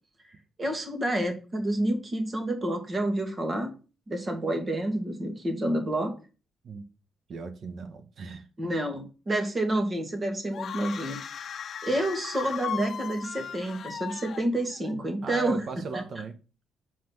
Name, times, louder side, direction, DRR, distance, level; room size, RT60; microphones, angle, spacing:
voice 1, 0.6-3.7 4.1-6.1 8.6-11.5 11.8-15.6 15.9-16.0, right 1 dB, 30° right, 2.1 m, -29 dB
voice 2, 7.3-8.5 15.2-16.4, right 4 dB, 55° right, 1.2 m, -37 dB
sound 1, 10.5-14.9, left 8 dB, 55° left, 0.7 m, -37 dB
5.8 x 4.7 x 6.0 m
cardioid pair, 90°, 0 cm